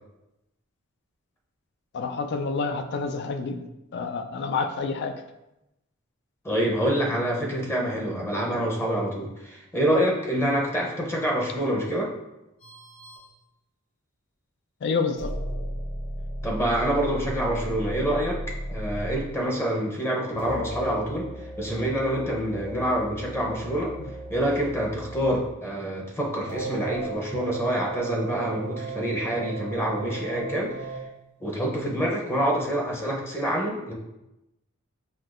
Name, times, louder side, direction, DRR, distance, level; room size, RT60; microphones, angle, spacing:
voice 1, 1.9-3.6 3.9-5.1 14.8-15.3, left 4 dB, 55° left, 8 dB, 0.4 m, -28 dB
voice 2, 6.4-12.1 16.4-18.4 18.7-21.3 21.6-23.9 24.3-30.7 31.4-33.9, right 1 dB, 10° left, -1 dB, 0.7 m, -26 dB
sound 1, 12.6-13.3 15.2-19.3 20.4-25.4 26.5-31.1, right 2 dB, 75° left, 1.4 m, -35 dB
5.8 x 2.7 x 2.5 m, 0.92 s
head